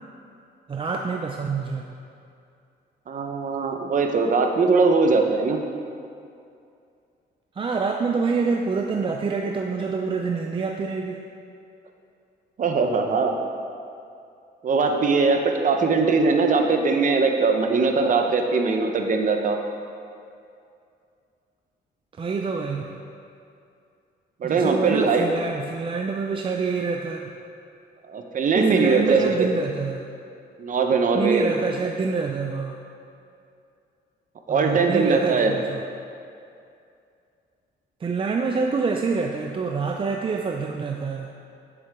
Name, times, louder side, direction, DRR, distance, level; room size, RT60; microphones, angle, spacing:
voice 1, 0.7-1.9 7.6-11.2 22.2-23.0 24.4-27.4 28.5-30.0 31.1-32.8 34.5-35.8 38.0-41.3, right 4 dB, 30° right, 2 dB, 0.5 m, -26 dB
voice 2, 3.1-5.6 12.6-13.4 14.6-19.6 24.4-25.3 28.1-29.5 30.6-31.5 34.5-35.5, right 4 dB, 45° right, 4 dB, 0.9 m, -21 dB
9.8 x 7.1 x 3.6 m, 2.5 s
cardioid pair, 110°, 18 cm